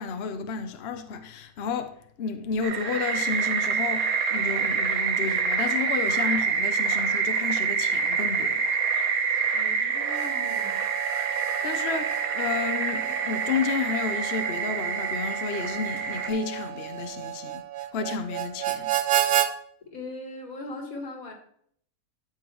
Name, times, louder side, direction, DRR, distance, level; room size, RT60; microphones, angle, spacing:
voice 1, 0.0-8.6 11.3-17.6 17.9-18.9, left 5 dB, 55° left, 0.9 m, -31 dB
sound 1, 2.6-16.3, right 6 dB, 80° right, 1.4 m, -27 dB
voice 2, 9.5-10.9 19.8-21.3, left 2 dB, 75° left, 2.0 m, -39 dB
Harmonica, 10.0-19.5, right 12 dB, 60° right, 0.8 m, -31 dB
11.5 x 6.2 x 3.0 m
omnidirectional pair, 1.5 m